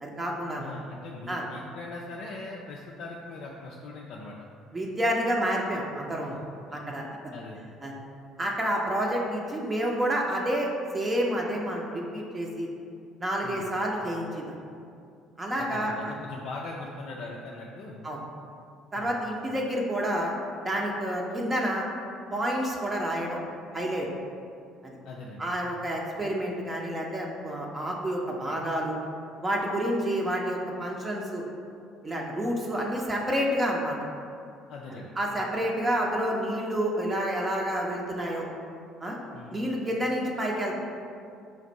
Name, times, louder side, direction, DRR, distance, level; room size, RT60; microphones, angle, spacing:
voice 1, 0.0-0.7 1.3-1.4 4.7-6.4 6.7-7.0 7.8-8.0 8.4-12.7 13.2-14.5 15.4-16.1 18.0-18.2 18.9-20.3 20.6-21.8 22.3-23.4 23.7-24.1 24.8-24.9 25.4-29.0 29.4-31.4 32.0-33.9 35.2-38.5 39.0-39.2 39.5-40.7, equal, 25° right, -2 dB, 0.7 m, -29 dB
voice 2, 0.6-4.3 6.7-6.8 7.3-7.6 13.4-13.7 15.6-18.0 18.9-19.1 25.0-25.5 34.7-35.1 39.3-39.6, left 2 dB, 55° left, -2 dB, 0.4 m, -40 dB
4.4 x 2.4 x 4.0 m, 2.4 s
figure-of-eight pair, 55°, 0 cm